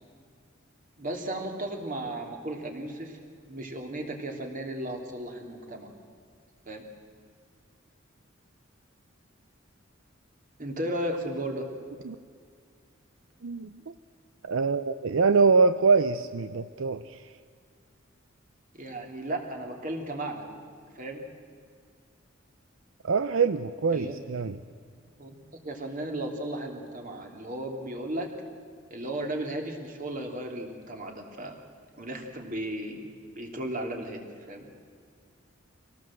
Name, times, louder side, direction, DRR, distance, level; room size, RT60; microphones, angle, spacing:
voice 1, 1.0-3.2 3.5-5.9 6.7-6.8 10.6-11.6 18.7-20.5 20.9-21.2 23.9-24.2 25.2-25.4 25.6-28.3 28.9-31.5 32.0-33.1 33.4-34.7, right 1 dB, 45° right, 2 dB, 3.1 m, -35 dB
voice 2, 13.4-13.9 14.4-17.2 23.0-24.6, right 4 dB, 80° right, 11 dB, 0.6 m, -24 dB
25.0 x 18.0 x 7.7 m, 2.1 s
head